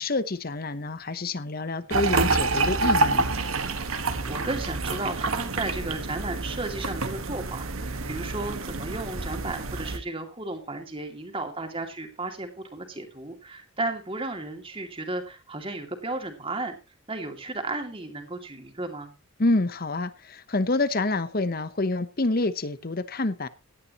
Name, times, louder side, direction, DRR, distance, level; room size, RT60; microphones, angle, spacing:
voice 1, 0.0-3.3 19.4-23.5, left 2 dB, 45° left, 14 dB, 0.9 m, -27 dB
sound 1, 1.9-10.0, right 3 dB, 80° right, 1.6 m, -27 dB
voice 2, 4.2-16.8 17.1-19.1, right 2 dB, 25° right, 5 dB, 2.5 m, -34 dB
17.0 x 11.5 x 3.0 m, 0.29 s
head